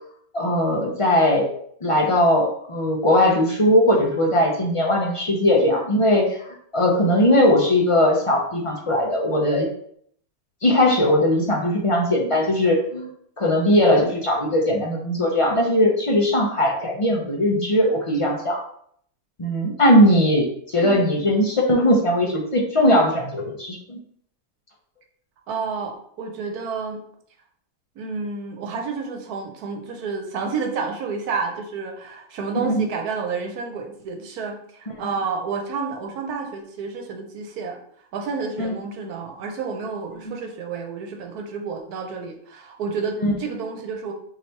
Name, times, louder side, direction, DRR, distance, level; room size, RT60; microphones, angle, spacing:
voice 1, 0.3-1.5 1.8-9.7 10.6-13.1 13.4-18.6 19.4-24.0 32.6-32.9 38.6-38.7 40.3-40.4 43.2-43.3, left 1 dB, 40° left, 0 dB, 0.5 m, -19 dB
voice 2, 25.5-27.0 28.0-37.8 38.1-44.1, right 5 dB, 85° right, 3 dB, 1.3 m, -30 dB
5.7 x 3.3 x 2.8 m, 0.65 s
omnidirectional pair, 1.6 m